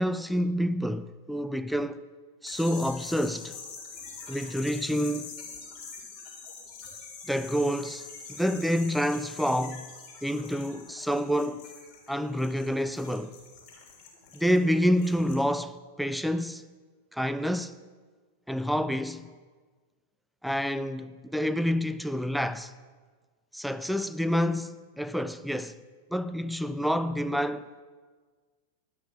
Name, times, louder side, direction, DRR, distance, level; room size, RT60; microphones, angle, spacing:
voice 1, 0.0-2.0 2.4-3.6 4.3-5.3 7.3-8.1 8.4-9.9 10.2-11.7 12.1-13.4 14.3-16.7 17.1-17.8 18.5-19.3 20.4-22.7 23.5-25.8 26.1-27.8, equal, ahead, 0.4 m, -28 dB
sound 1, 2.4-15.4, left 5 dB, 45° left, 3.9 m, -45 dB
12.0 x 6.2 x 7.1 m
hypercardioid pair, 105°, 0 cm